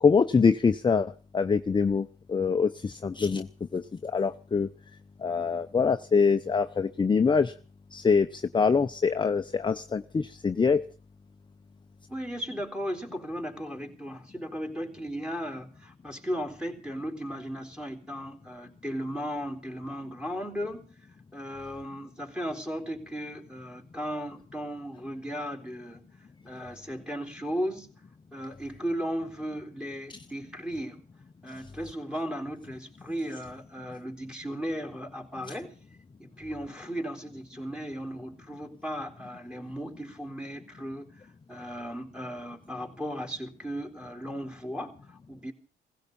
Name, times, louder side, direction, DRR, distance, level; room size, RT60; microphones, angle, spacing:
voice 1, 0.0-3.5 3.7-4.7 5.2-7.5 7.9-10.8, left 5 dB, 25° left, 0.7 m, -24 dB
voice 2, 12.1-20.9 21.3-26.1 26.4-27.9 28.3-31.0 31.4-35.8 36.2-41.2 41.5-45.5, equal, 5° right, 3.9 m, -36 dB
16.5 x 16.0 x 5.4 m
cardioid pair, 90°, 20 cm